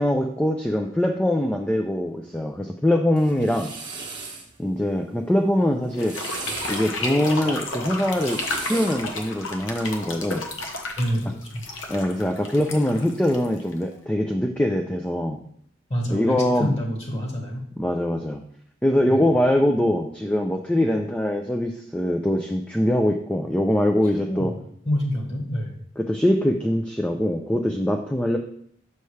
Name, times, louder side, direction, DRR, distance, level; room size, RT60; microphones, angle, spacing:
voice 1, 0.0-3.7 4.6-6.2 6.7-8.4 8.7-10.4 11.9-15.4 16.1-16.7 17.8-18.4 18.8-24.5 26.0-28.4, left 1 dB, 5° left, 3 dB, 0.4 m, -23 dB
sound 1, 3.2-4.5 5.8-6.9 8.0-9.1, right 4 dB, 25° right, 1.0 m, -36 dB
sound 2, 5.9-13.9, left 2 dB, 90° left, 1.0 m, -32 dB
voice 2, 10.9-11.6 15.9-17.7 19.1-19.2 24.0-24.6 24.8-25.7, equal, 30° left, 0 dB, 1.4 m, -27 dB
6.6 x 5.6 x 3.2 m, 0.64 s
head